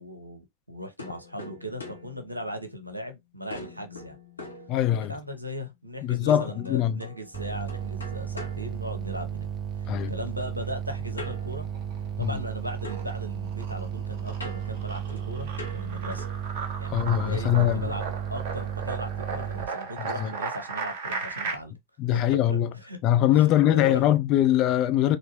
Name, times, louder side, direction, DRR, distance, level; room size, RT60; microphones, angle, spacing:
voice 1, 0.0-4.2 5.0-9.5 9.8-11.7 12.2-16.3 16.8-21.7 22.1-23.0 23.3-24.0, equal, 85° right, 0.9 m, -38 dB
sound 1, 1.0-3.1 3.5-5.3 6.3-9.5 11.2-12.5 12.8-16.5, left 1 dB, 80° left, 1.0 m, -45 dB
voice 2, 4.7-5.1 6.0-7.0 9.9-10.1 12.2-12.4 16.9-17.9 20.0-20.3 22.0-22.7 23.0-25.2, left 12 dB, 40° left, 0.5 m, -22 dB
sound 2, 7.3-19.7, right 9 dB, 30° right, 0.7 m, -34 dB
sound 3, 11.6-12.4 12.8-21.5, right 4 dB, 50° right, 1.0 m, -36 dB
4.3 x 2.6 x 3.0 m
figure-of-eight pair, 90°, 0 cm